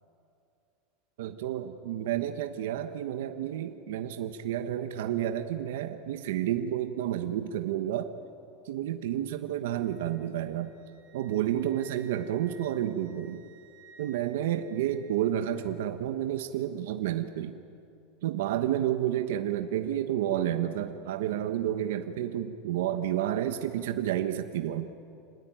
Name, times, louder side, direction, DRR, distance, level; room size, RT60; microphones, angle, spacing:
voice 1, 1.2-8.1 8.6-10.7 11.1-13.4 14.0-17.6 18.2-24.9, right 11 dB, 85° right, 8 dB, 1.2 m, -30 dB
Wind instrument woodwind instrument, 9.8-15.7, right 5 dB, 60° right, 3.2 m, -58 dB
27.0 x 20.0 x 9.1 m, 2.5 s
supercardioid pair, 165°, 0 cm